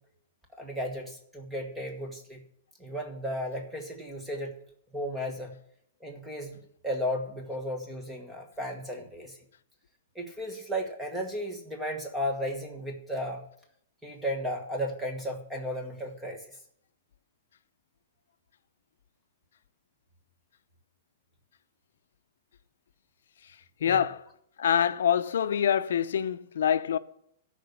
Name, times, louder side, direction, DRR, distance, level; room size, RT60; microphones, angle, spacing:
voice 1, 0.6-2.4 2.8-4.5 4.9-5.6 6.0-9.4 10.1-13.4 14.0-16.4 23.8-24.0, equal, 5° right, 1.3 m, -34 dB
voice 2, 23.8-24.3 24.6-27.0, left 8 dB, 75° left, 0.6 m, -25 dB
13.0 x 5.2 x 6.8 m
hypercardioid pair, 175°, 0 cm